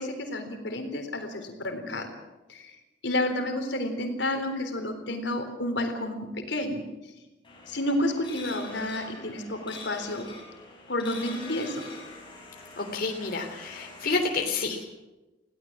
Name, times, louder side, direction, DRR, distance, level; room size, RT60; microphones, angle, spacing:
voice 1, 0.0-2.1 2.5-2.7 3.0-6.8 7.7-10.3 10.9-11.8, left 1 dB, 70° left, 6 dB, 3.8 m, -30 dB
sound 1, 7.4-14.2, left 2 dB, 25° left, 6.8 m, -44 dB
voice 2, 12.8-14.8, left 4 dB, 50° left, 2 dB, 3.1 m, -29 dB
21.0 x 17.5 x 7.5 m, 1.0 s
head